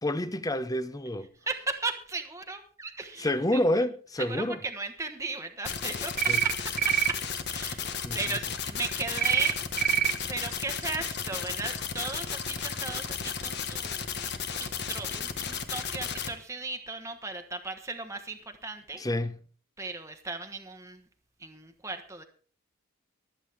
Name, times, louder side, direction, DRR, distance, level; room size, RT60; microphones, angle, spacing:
voice 1, 0.0-1.3 3.2-4.6 6.3-6.4 8.0-8.2 19.0-19.4, left 1 dB, 15° left, 0.7 m, -28 dB
voice 2, 1.4-3.6 4.2-9.6 10.0-19.0 19.8-21.0 21.4-22.2, right 3 dB, 15° right, 1.1 m, -37 dB
sound 1, 5.6-16.3, left 6 dB, 50° left, 1.4 m, -34 dB
sound 2, 6.2-6.5 6.8-7.1 9.2-9.5 9.8-10.1, right 10 dB, 40° right, 1.0 m, -25 dB
24.0 x 8.3 x 3.5 m
head